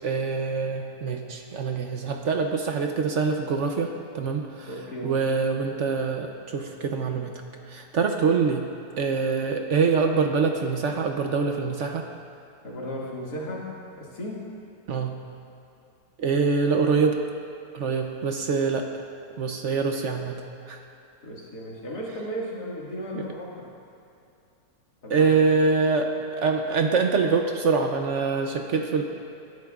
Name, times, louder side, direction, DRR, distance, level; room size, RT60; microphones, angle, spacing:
voice 1, 0.0-4.7 5.0-7.3 7.7-8.6 9.0-12.0 14.9-15.1 16.2-17.2 17.7-18.9 19.4-20.4 20.7-20.8 25.1-26.1 26.4-29.0, right 5 dB, 60° right, 4 dB, 0.9 m, -24 dB
voice 2, 4.6-5.1 12.6-13.7 14.0-14.5 21.2-23.7 25.0-25.3, equal, 90° left, -4 dB, 2.5 m, -35 dB
20.0 x 10.5 x 2.4 m, 2.6 s
omnidirectional pair, 1.7 m